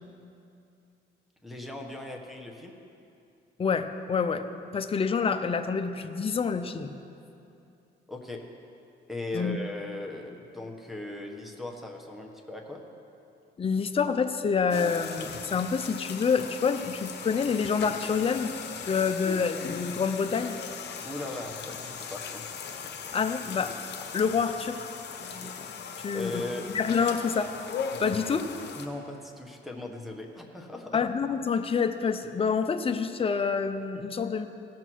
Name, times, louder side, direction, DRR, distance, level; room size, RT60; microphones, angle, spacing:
voice 1, 1.4-2.8 8.1-8.4 9.1-12.8 21.0-22.4 26.1-26.7 28.8-31.0, left 2 dB, ahead, -1 dB, 1.3 m, -38 dB
voice 2, 3.6-6.9 9.3-9.6 13.6-18.5 18.9-20.6 23.1-24.9 25.4-25.5 26.0-26.4 26.7-27.6 28.0-28.5 30.9-34.5, left 5 dB, 30° left, 8 dB, 0.6 m, -27 dB
sound 1, 14.7-28.9, left 6 dB, 60° left, 1.0 m, -38 dB
17.0 x 6.0 x 4.6 m, 2.6 s
cardioid pair, 90°, 20 cm